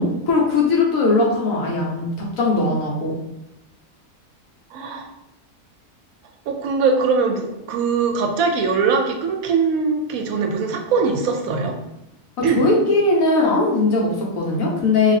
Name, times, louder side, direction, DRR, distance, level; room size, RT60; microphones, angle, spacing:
voice 1, 0.0-2.0 2.4-3.2 12.6-15.1, left 3 dB, 75° left, -2 dB, 1.2 m, -19 dB
voice 2, 4.7-5.1 6.5-11.8 12.4-12.6, right 5 dB, 85° right, 4 dB, 1.0 m, -21 dB
3.2 x 2.9 x 2.7 m, 0.88 s
omnidirectional pair, 1.4 m